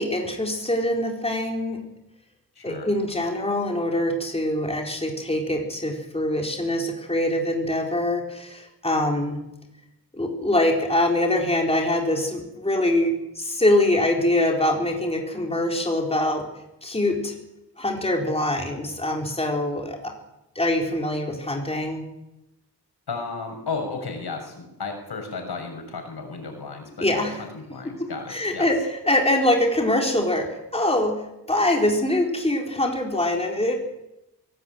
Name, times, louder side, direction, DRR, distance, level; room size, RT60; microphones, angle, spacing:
voice 1, 0.0-1.8 2.6-9.4 10.1-16.4 16.8-17.3 17.8-20.1 20.6-22.1 27.0-27.4 28.3-31.2 31.5-33.8, left 1 dB, 15° left, 1 dB, 4.1 m, -24 dB
voice 2, 2.5-2.9 23.1-28.7, left 4 dB, 80° left, 4 dB, 6.7 m, -34 dB
23.5 x 18.0 x 9.2 m, 0.91 s
wide cardioid pair, 110°, 38 cm